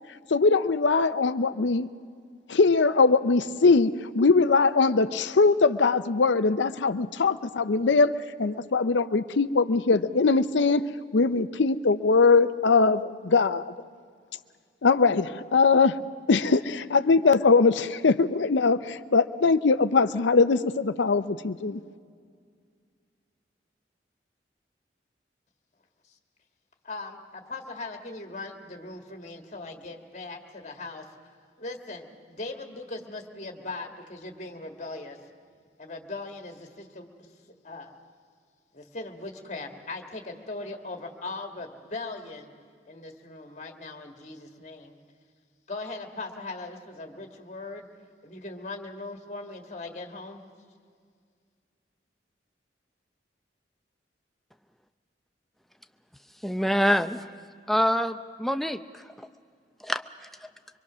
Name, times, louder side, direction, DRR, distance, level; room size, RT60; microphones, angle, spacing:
voice 1, 0.3-1.9 2.5-8.1 8.4-10.8 11.1-13.7 14.8-16.0 16.3-21.8, left 4 dB, 85° left, 12 dB, 0.6 m, -21 dB
voice 2, 26.8-31.0 31.6-35.2 35.8-37.1 37.6-38.0 38.7-42.5 42.9-44.9 45.7-47.9 48.2-50.4, left 2 dB, 40° left, 4 dB, 1.8 m, -39 dB
voice 3, 56.4-57.2 57.7-58.8 59.9-60.0, equal, ahead, 9 dB, 0.5 m, -24 dB
24.5 x 23.0 x 6.2 m, 2.1 s
head